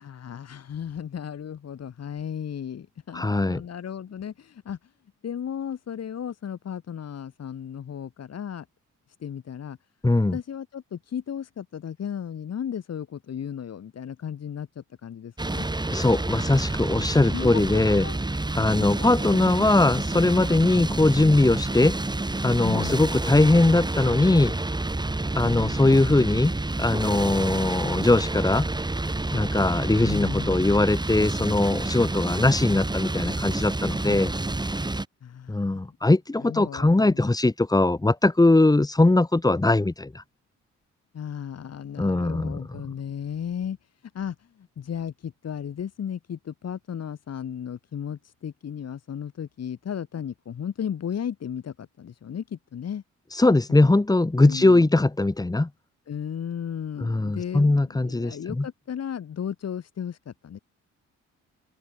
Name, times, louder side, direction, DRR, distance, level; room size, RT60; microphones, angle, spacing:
voice 1, 0.0-4.9 5.2-8.6 9.2-9.8 10.3-15.6 17.3-18.2 18.7-19.8 22.6-23.1 30.0-30.6 35.2-35.8 36.4-37.2 41.1-43.8 44.1-53.0 54.4-54.9 56.1-60.6, left 8 dB, 55° left, 6.3 m, -35 dB
voice 2, 3.1-3.6 10.0-10.4 15.9-18.0 18.5-22.0 22.4-24.5 25.3-26.5 26.8-28.7 29.3-34.3 35.5-40.2 42.0-42.9 53.3-55.7 57.0-58.7, left 2 dB, 10° left, 1.5 m, -21 dB
sound 1, 15.4-35.0, right 2 dB, 15° right, 4.6 m, -29 dB
open air
cardioid pair, 90°, 30 cm